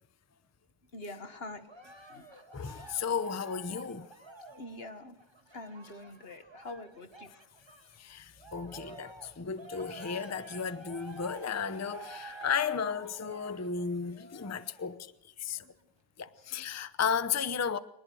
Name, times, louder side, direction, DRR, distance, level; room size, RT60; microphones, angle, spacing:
voice 1, 0.9-2.3 4.5-5.2 5.5-7.3 15.6-15.7 16.4-16.7, left 2 dB, 40° left, 1.7 m, -45 dB
Cheering, 1.7-8.0 8.4-15.0 15.6-15.7, right 2 dB, 15° right, 1.4 m, -49 dB
voice 2, 2.5-4.1 8.0-15.1 15.4-15.6 16.2-17.8, left 6 dB, 20° left, 0.4 m, -34 dB
24.0 x 20.5 x 6.4 m
omnidirectional pair, 1.7 m